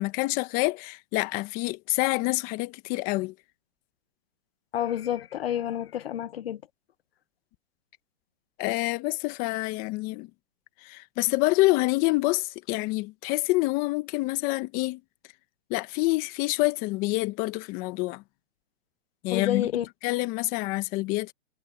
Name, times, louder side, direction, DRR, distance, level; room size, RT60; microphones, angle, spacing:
voice 1, 0.0-3.3 8.6-10.3 10.8-15.0 15.7-18.2 19.2-19.7 20.0-21.3, left 22 dB, 30° left, 1.1 m, -27 dB
voice 2, 4.7-6.6 19.3-19.9, left 10 dB, 85° left, 0.9 m, -29 dB
hypercardioid pair, 150°, 29 cm